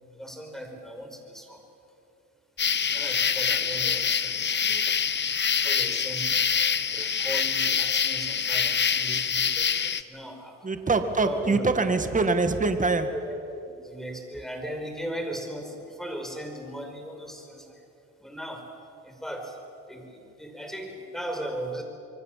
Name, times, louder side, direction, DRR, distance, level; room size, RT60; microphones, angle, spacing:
voice 1, 0.1-1.6 2.9-4.9 5.5-6.6 6.9-10.7 11.2-11.6 13.1-17.8 18.2-18.7 19.0-19.6 19.9-21.8, equal, ahead, 3 dB, 5.2 m, -38 dB
sound 1, 2.6-10.0, left 7 dB, 35° left, 1.0 m, -25 dB
voice 2, 10.6-13.1, right 3 dB, 25° right, 8 dB, 2.1 m, -24 dB
26.5 x 23.0 x 7.6 m, 2.7 s
cardioid pair, 90°, 30 cm